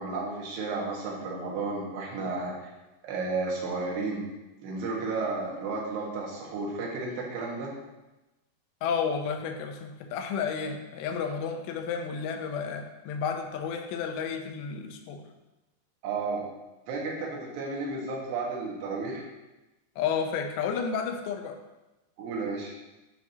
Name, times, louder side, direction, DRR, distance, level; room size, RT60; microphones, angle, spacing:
voice 1, 0.0-2.7 3.0-4.2 4.6-7.7 16.0-16.5 16.9-19.2 22.2-22.7, right 3 dB, 75° right, -3 dB, 3.5 m, -32 dB
voice 2, 8.8-15.2 20.0-21.6, left 6 dB, 90° left, 4 dB, 3.0 m, -31 dB
9.6 x 6.0 x 2.9 m, 1.0 s
omnidirectional pair, 4.9 m